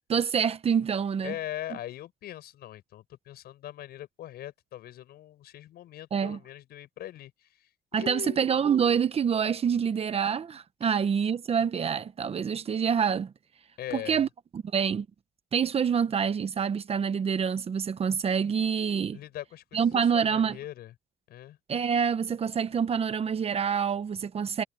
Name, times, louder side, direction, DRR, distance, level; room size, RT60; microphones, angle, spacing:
voice 1, 0.1-1.3 6.1-6.4 7.9-13.3 13.9-14.3 14.5-15.1 15.5-19.2 19.7-20.6 21.7-24.6, right 7 dB, 35° right, 1.1 m, -26 dB
voice 2, 1.2-8.5 13.8-14.2 19.1-20.9 21.3-21.6, left 13 dB, 70° left, 6.5 m, -41 dB
cardioid pair, 110°, 17 cm